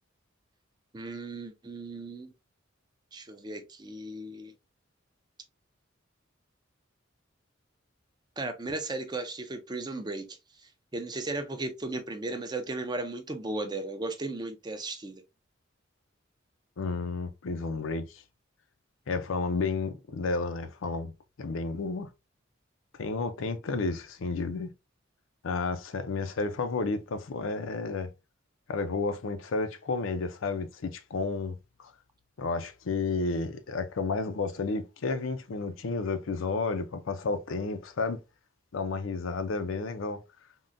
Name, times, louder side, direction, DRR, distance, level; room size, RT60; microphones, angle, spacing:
voice 1, 0.9-2.3 3.1-4.5 8.4-10.3 10.9-15.2, right 2 dB, 20° right, 0.5 m, -35 dB
voice 2, 16.8-18.1 19.1-21.1 21.4-22.1 23.0-24.7 25.4-28.1 28.7-31.6 32.4-38.2 38.7-40.2, left 4 dB, 85° left, 0.5 m, -31 dB
3.6 x 2.1 x 2.5 m
head